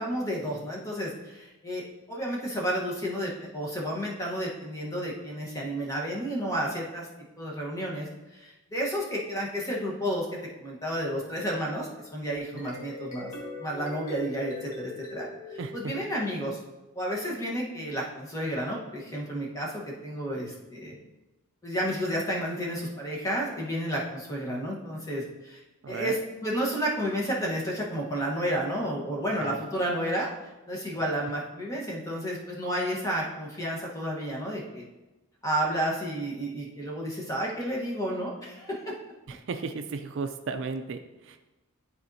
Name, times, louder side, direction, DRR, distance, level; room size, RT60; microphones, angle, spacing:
voice 1, 0.0-1.8 2.1-7.1 7.4-10.3 10.6-13.3 13.6-16.6 16.9-21.0 21.6-25.6 25.9-34.8 35.4-38.8, equal, 15° left, -3 dB, 1.2 m, -31 dB
sound 1, 12.4-16.7, left 2 dB, 35° left, 1.4 m, -41 dB
voice 2, 15.6-15.9 25.8-26.2 29.4-29.6 39.3-41.4, right 4 dB, 55° right, 7 dB, 0.4 m, -35 dB
12.0 x 4.3 x 2.7 m, 1.1 s
head